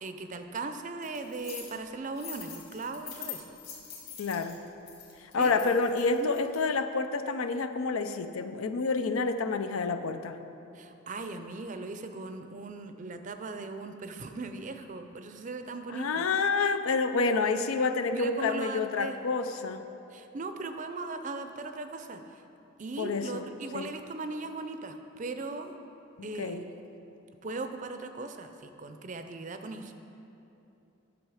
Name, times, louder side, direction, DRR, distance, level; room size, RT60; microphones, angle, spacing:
voice 1, 0.0-3.4 5.4-5.6 6.1-6.3 10.8-16.3 18.1-19.2 20.1-22.2 22.8-25.7 26.2-26.6 27.4-29.9, right 3 dB, 35° right, 7 dB, 0.5 m, -38 dB
sound 1, 1.0-1.7 2.1-6.6, left 8 dB, 50° left, 2.2 m, -44 dB
voice 2, 4.2-4.6 5.2-10.4 15.9-19.8 23.0-23.5 23.7-23.9 26.2-26.7, left 4 dB, 85° left, 9 dB, 0.5 m, -29 dB
11.0 x 6.5 x 4.9 m, 2.9 s
head